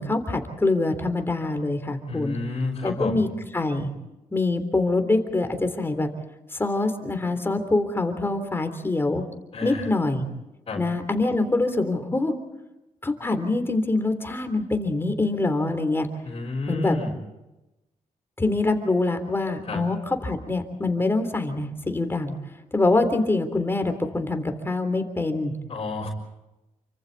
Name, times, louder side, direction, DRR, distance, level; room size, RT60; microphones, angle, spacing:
voice 1, 0.0-2.4 2.8-3.3 3.5-3.9 4.3-6.1 6.5-9.2 9.6-10.3 10.8-12.3 13.0-16.1 16.7-17.0 18.4-22.4 22.7-25.5, left 2 dB, 15° left, 7 dB, 3.5 m, -24 dB
voice 2, 2.1-3.3 9.5-9.9 10.7-10.8 16.2-17.1 19.7-19.8 25.7-26.1, left 3 dB, 45° left, -3 dB, 4.5 m, -30 dB
29.0 x 25.5 x 4.1 m, 0.97 s
cardioid pair, 110°, 13 cm